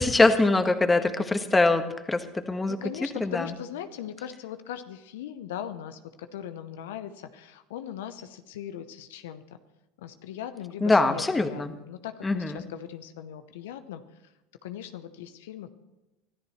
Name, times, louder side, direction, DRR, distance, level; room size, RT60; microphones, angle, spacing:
voice 1, 0.0-2.8 3.2-3.5 10.8-11.7 12.2-12.6, left 2 dB, 15° left, 8 dB, 1.4 m, -23 dB
voice 2, 0.7-1.1 2.7-9.4 10.0-14.3 14.6-15.7, left 10 dB, 75° left, 10 dB, 0.7 m, -39 dB
24.0 x 13.5 x 3.2 m, 0.99 s
hypercardioid pair, 80°, 0 cm